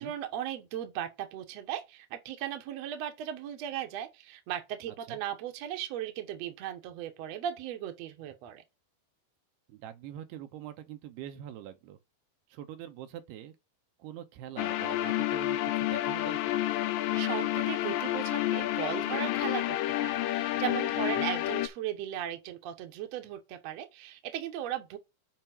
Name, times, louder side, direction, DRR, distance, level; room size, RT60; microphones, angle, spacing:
voice 1, 0.0-8.6 17.1-25.0, right 11 dB, 65° right, 1.7 m, -37 dB
voice 2, 9.7-12.0 12.5-13.5 14.0-16.6 21.0-21.3, right 11 dB, 90° right, 3.0 m, -44 dB
sound 1, 14.6-21.7, left 15 dB, 80° left, 2.2 m, -30 dB
7.4 x 4.5 x 6.0 m
omnidirectional pair, 4.6 m